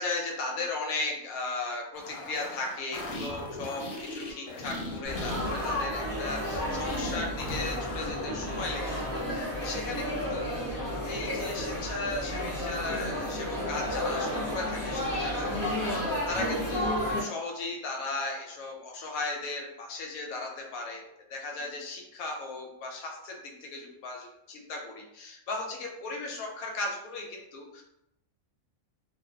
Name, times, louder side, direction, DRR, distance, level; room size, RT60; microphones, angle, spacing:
voice 1, 0.0-10.0 10.3-10.5 11.0-27.8, left 2 dB, 85° left, 0 dB, 1.0 m, -36 dB
sound 1, 1.9-8.1, left 2 dB, 70° left, 0.8 m, -39 dB
Laughter / Chatter / Crowd, 5.0-17.2, left 1 dB, 25° left, 0.5 m, -32 dB
2.4 x 2.1 x 2.6 m, 0.85 s
omnidirectional pair, 1.4 m